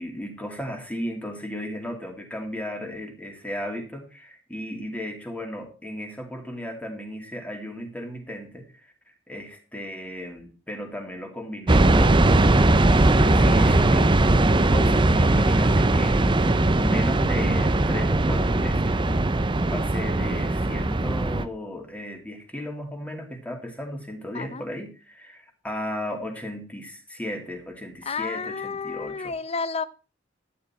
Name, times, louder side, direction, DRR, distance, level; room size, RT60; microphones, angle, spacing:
voice 1, 0.0-8.9 9.3-19.0 19.7-29.3, equal, 5° left, 3 dB, 2.5 m, -35 dB
sound 1, 11.7-21.4, right 2 dB, 25° right, 0.7 m, -20 dB
voice 2, 24.3-24.7 28.0-29.8, left 5 dB, 30° left, 16 dB, 0.7 m, -31 dB
12.0 x 10.5 x 4.3 m, 0.32 s
head